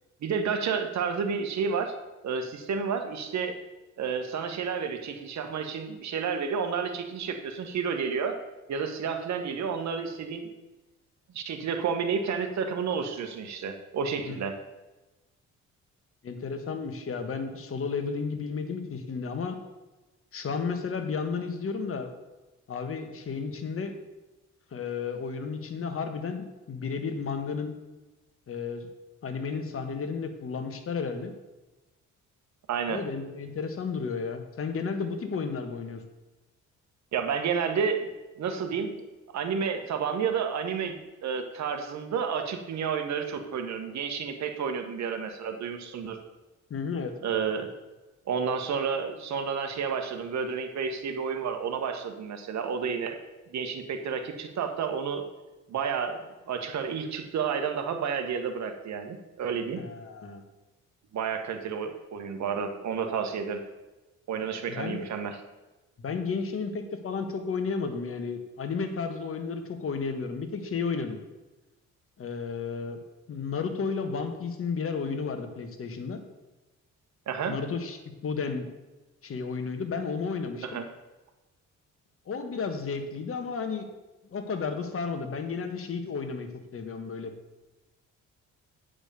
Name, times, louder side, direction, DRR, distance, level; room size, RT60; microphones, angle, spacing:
voice 1, 0.2-2.0 2.2-3.6 4.0-8.4 8.7-10.5 11.3-14.6 32.7-33.0 37.1-38.1 38.4-39.0 39.3-46.2 47.2-47.7 48.2-53.2 53.5-55.2 55.7-56.2 56.5-59.8 61.1-63.6 64.3-65.4 77.3-77.6 80.6-80.8, right 6 dB, 65° right, 6 dB, 1.4 m, -30 dB
voice 2, 16.2-19.6 20.3-22.1 22.7-23.9 24.7-27.7 28.5-28.9 29.2-31.3 32.9-36.0 46.7-47.1 59.8-60.4 64.7-65.0 66.0-71.2 72.2-73.0 73.3-76.2 77.5-78.7 79.2-80.7 82.3-83.9 84.3-87.3, left 5 dB, 45° left, 7 dB, 1.4 m, -32 dB
8.7 x 5.1 x 6.9 m, 1.1 s
cardioid pair, 90°, 30 cm